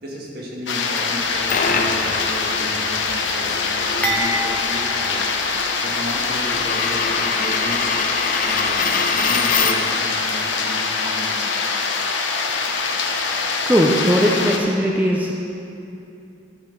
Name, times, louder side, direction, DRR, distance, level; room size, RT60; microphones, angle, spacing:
voice 1, 0.0-5.2 5.8-7.9 8.4-11.6, equal, 55° right, -3 dB, 1.9 m, -34 dB
sound 1, 0.7-14.6, left 4 dB, 85° left, 0.9 m, -23 dB
Coin (dropping), 1.1-10.0, left 5 dB, 45° left, 0.7 m, -26 dB
sound 2, 4.0-6.2 6.5-6.7 7.6-7.7, equal, 10° left, 1.0 m, -28 dB
voice 2, 13.7-15.3, equal, 10° right, -2 dB, 0.7 m, -18 dB
12.0 x 6.0 x 6.8 m, 2.7 s
head